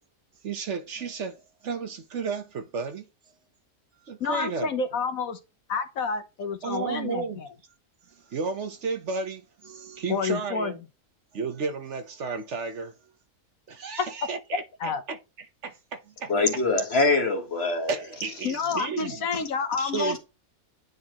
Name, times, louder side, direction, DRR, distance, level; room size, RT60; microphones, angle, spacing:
voice 1, 0.4-3.0 4.0-4.7 6.6-7.4 8.3-10.8 11.3-12.9 13.7-16.3 17.9-19.3 19.9-20.2, right 5 dB, 55° right, 1.1 m, -33 dB
voice 2, 4.2-5.4 5.7-7.5 10.1-10.7 14.0-14.1 14.5-15.0 18.4-20.2, left 5 dB, 75° left, 1.4 m, -29 dB
voice 3, 16.3-17.9 19.8-20.1, left 3 dB, 45° left, 1.9 m, -24 dB
9.6 x 4.3 x 2.9 m
omnidirectional pair, 1.5 m